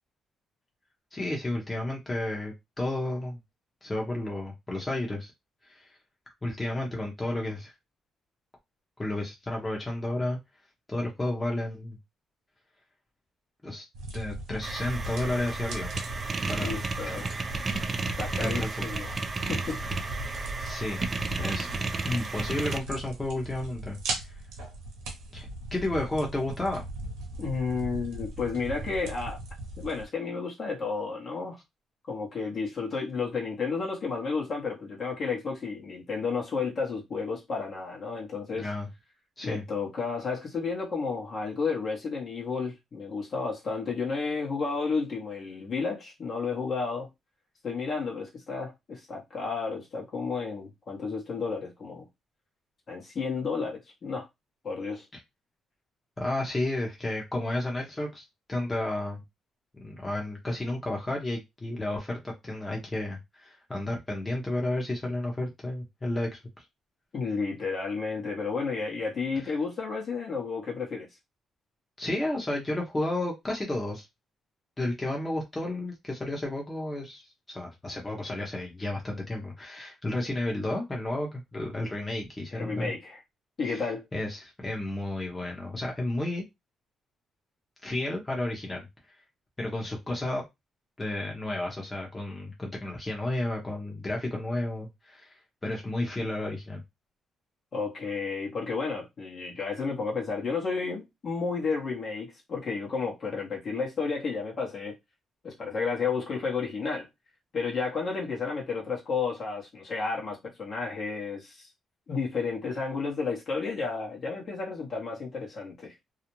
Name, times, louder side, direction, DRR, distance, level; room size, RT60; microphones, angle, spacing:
voice 1, 1.1-3.4 3.8-5.3 5.6-6.0 6.4-7.7 9.0-10.4 10.9-12.0 13.6-13.8 14.1-15.9 16.5-16.8 17.1-17.2 17.8-18.7 20.6-21.0 21.4-21.7 22.0-24.3 25.3-26.8 38.6-38.9 39.4-39.6 56.2-59.2 59.8-66.6 72.0-74.1 74.8-82.9 83.6-86.4 87.8-88.8 89.6-90.4 91.0-96.8, left 1 dB, 20° left, 0.7 m, -32 dB
sound 1, 13.9-30.1, right 2 dB, 85° right, 0.7 m, -39 dB
sound 2, 14.6-22.8, right 3 dB, 35° right, 0.3 m, -33 dB
voice 2, 16.6-17.3 18.0-19.1 19.5-19.8 27.4-29.4 29.8-31.6 32.1-38.7 39.4-47.1 47.6-52.1 52.9-54.3 54.6-55.1 67.1-71.1 82.5-83.2 83.6-84.0 97.7-105.0 105.4-107.1 107.5-111.7 112.1-116.0, left 4 dB, 50° left, 0.8 m, -32 dB
2.4 x 2.0 x 2.9 m
cardioid pair, 90°, 0 cm